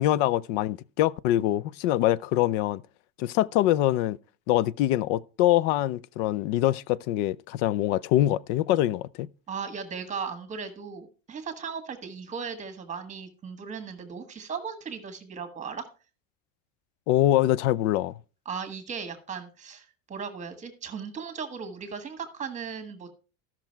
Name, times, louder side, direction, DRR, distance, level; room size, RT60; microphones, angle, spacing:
voice 1, 0.0-2.8 3.2-4.2 4.5-9.3 17.1-18.1, left 14 dB, 75° left, 0.6 m, -24 dB
voice 2, 9.5-15.9 18.4-23.1, right 6 dB, 20° right, 1.5 m, -37 dB
13.0 x 6.0 x 4.5 m
cardioid pair, 160°, 37 cm